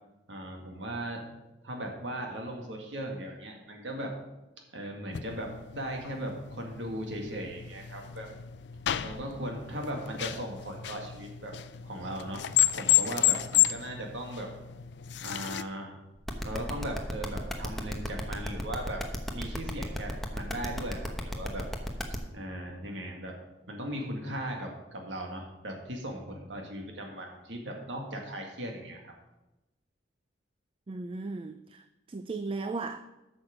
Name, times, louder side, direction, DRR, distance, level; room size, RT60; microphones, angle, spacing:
voice 1, 0.3-1.3 1.6-4.2 4.7-8.3 9.0-11.6 11.8-12.5 12.8-14.5 15.2-15.9 16.4-19.0 19.3-21.7 22.1-23.4 23.7-29.1, right 1 dB, 80° right, 1 dB, 1.9 m, -38 dB
sound 1, 5.1-15.6, left 13 dB, 70° left, 0.4 m, -31 dB
sound 2, 16.3-22.1, equal, ahead, 0.9 m, -34 dB
voice 2, 30.9-33.0, right 3 dB, 30° right, 9 dB, 0.4 m, -36 dB
8.7 x 6.2 x 6.3 m, 0.98 s
head